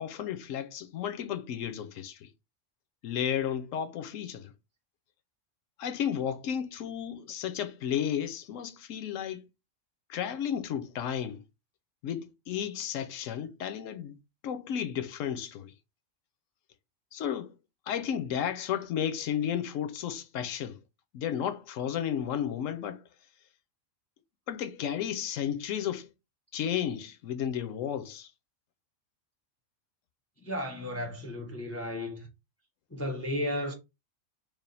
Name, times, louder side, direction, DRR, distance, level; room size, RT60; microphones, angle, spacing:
voice 1, 0.0-2.3 3.0-4.5 5.8-9.4 10.1-11.4 12.0-14.2 14.4-15.7 17.1-17.5 17.9-20.8 21.1-23.0 24.5-26.1 26.5-28.3, left 9 dB, 75° left, 0.9 m, -33 dB
voice 2, 30.4-32.3 32.9-33.7, left 1 dB, 15° left, 0.5 m, -34 dB
3.4 x 2.4 x 3.9 m
omnidirectional pair, 1.4 m